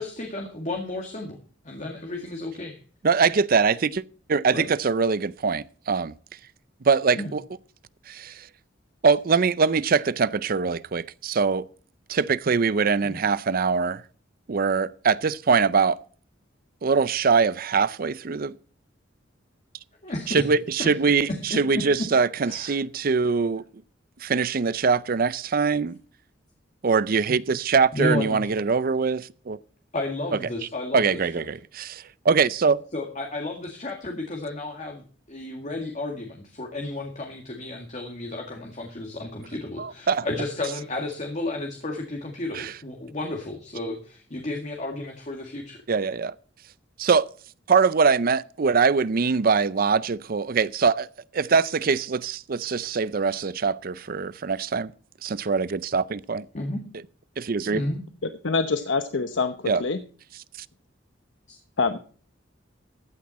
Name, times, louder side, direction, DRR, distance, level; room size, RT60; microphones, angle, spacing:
voice 1, 0.0-2.8 4.5-4.7 7.2-7.3 13.0-13.2 20.0-20.5 20.8-20.9 21.3-22.1 22.4-22.8 27.9-28.4 29.9-31.1 32.9-45.8 56.5-56.9 57.7-58.0 61.5-61.6, left 2 dB, 40° left, 2.1 m, -32 dB
voice 2, 3.0-4.0 4.3-6.1 6.8-7.4 8.1-8.5 9.0-11.7 12.1-14.0 14.5-16.0 16.8-18.6 20.3-23.6 24.2-26.0 26.8-29.6 30.9-32.8 39.8-40.3 42.5-42.7 45.9-46.4 47.0-47.3 47.7-51.1 51.3-54.9 55.2-56.5 57.4-57.8 59.6-59.8 60.6-60.7, right 5 dB, 50° right, 0.5 m, -23 dB
voice 3, 58.4-59.5 59.8-60.0 61.8-62.0, left 4 dB, 80° left, 0.9 m, -24 dB
15.0 x 9.7 x 4.2 m
head